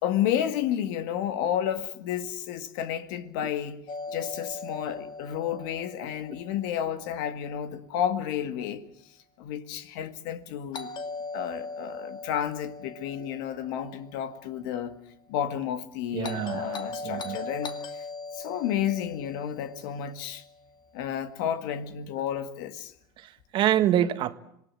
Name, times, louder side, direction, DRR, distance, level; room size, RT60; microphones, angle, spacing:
voice 1, 0.0-3.8 4.1-8.9 9.4-10.9 11.3-15.0 15.3-18.0 18.3-20.4 20.9-22.9, left 10 dB, 70° left, 2.0 m, -31 dB
Doorbell, 3.9-7.9 10.7-15.0 16.2-20.6, left 3 dB, 45° left, 2.4 m, -40 dB
voice 2, 16.1-17.4 23.2-24.4, right 11 dB, 50° right, 1.5 m, -26 dB
26.0 x 19.0 x 7.6 m
supercardioid pair, 105°, 11 cm